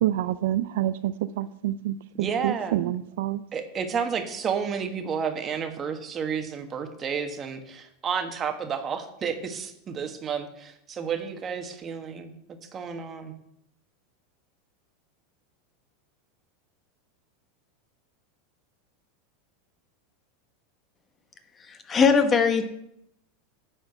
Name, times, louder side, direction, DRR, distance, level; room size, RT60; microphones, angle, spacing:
voice 1, 0.0-3.4, right 13 dB, 70° right, 15 dB, 0.4 m, -27 dB
voice 2, 2.1-2.8 3.5-13.3, right 6 dB, 30° right, 6 dB, 1.4 m, -31 dB
voice 3, 21.7-22.7, left 5 dB, 25° left, 8 dB, 1.3 m, -20 dB
10.5 x 4.4 x 6.6 m, 0.77 s
hypercardioid pair, 95°, 0 cm